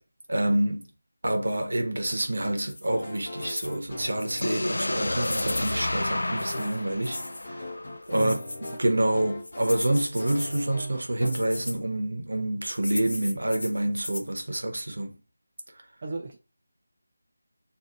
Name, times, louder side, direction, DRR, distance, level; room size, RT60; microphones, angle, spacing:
voice 1, 0.3-0.9 1.2-7.2 7.5-7.7 8.1-8.3 8.7-15.2, right 1 dB, 65° right, 0.9 m, -27 dB
sound 1, 2.7-2.9 3.4-3.8 4.2-4.5 5.2-5.9 6.4-7.5 8.0-8.8 9.4-10.7 11.2-11.8 12.7-14.3, left 1 dB, 65° left, 0.7 m, -37 dB
sound 2, 2.9-11.3, left 1 dB, 40° left, 1.1 m, -40 dB
sound 3, 4.4-8.3, left 1 dB, 85° left, 0.3 m, -31 dB
voice 2, 16.0-16.4, right 3 dB, 25° right, 0.3 m, -34 dB
6.2 x 2.5 x 2.6 m
figure-of-eight pair, 175°, 0 cm